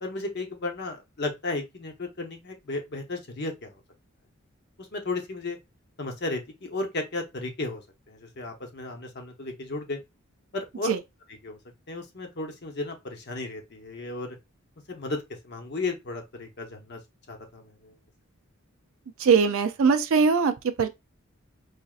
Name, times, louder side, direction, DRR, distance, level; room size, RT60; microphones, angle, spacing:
voice 1, 0.0-3.7 4.9-5.6 6.0-10.0 10.5-10.9 11.4-11.6 11.9-14.3 14.9-17.0 17.3-17.9, left 2 dB, 50° left, 0.9 m, -34 dB
voice 2, 19.2-20.5 20.8-20.9, right 5 dB, 70° right, 0.4 m, -21 dB
4.9 x 2.6 x 2.4 m
head